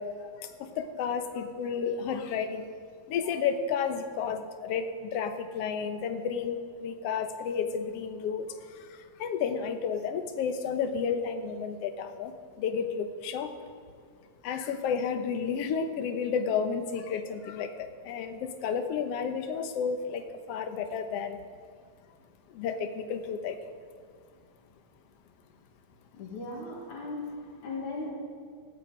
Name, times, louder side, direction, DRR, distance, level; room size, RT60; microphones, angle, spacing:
voice 1, 0.0-2.7 3.1-8.9 9.2-12.3 12.6-13.5 14.4-21.4 22.5-23.6, left 6 dB, 65° left, 7 dB, 1.9 m, -32 dB
voice 2, 26.1-28.1, left 2 dB, 85° left, -6 dB, 3.6 m, -37 dB
18.5 x 13.5 x 5.1 m, 2.2 s
omnidirectional pair, 3.3 m